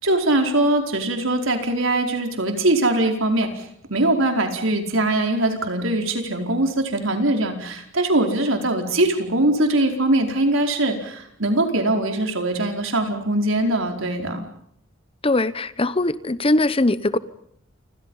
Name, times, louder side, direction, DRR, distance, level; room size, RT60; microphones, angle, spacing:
voice 1, 0.0-3.6 3.9-14.4, right 1 dB, 85° right, 4 dB, 4.7 m, -21 dB
voice 2, 15.2-17.2, left 2 dB, 30° left, 15 dB, 1.0 m, -21 dB
29.5 x 26.5 x 5.7 m, 0.69 s
head